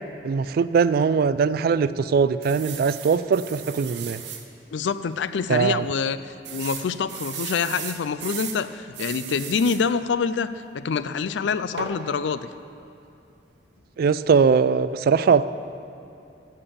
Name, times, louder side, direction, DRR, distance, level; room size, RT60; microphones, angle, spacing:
voice 1, 0.2-4.2 5.5-5.8 14.0-15.5, right 5 dB, 55° right, 15 dB, 0.3 m, -21 dB
sound 1, 2.4-4.4 5.0-5.1 5.3-5.4 6.4-8.6 8.9-9.8 11.8-12.0, right 8 dB, 75° right, 0.9 m, -36 dB
voice 2, 4.7-10.5 10.7-12.5, left 5 dB, 85° left, 14 dB, 0.4 m, -26 dB
14.0 x 5.5 x 6.9 m, 2.7 s
head